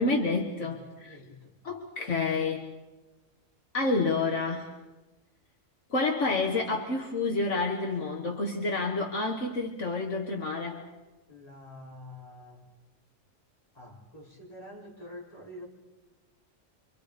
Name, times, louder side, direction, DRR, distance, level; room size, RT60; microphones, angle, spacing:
voice 1, 0.0-1.2 1.6-2.7 3.7-4.7 5.9-10.8, left 3 dB, 65° left, 1 dB, 1.9 m, -29 dB
voice 2, 1.0-1.5 11.3-12.6 13.7-15.7, left 1 dB, 30° left, -3 dB, 4.5 m, -47 dB
28.5 x 25.5 x 5.2 m, 1.1 s
omnidirectional pair, 1.4 m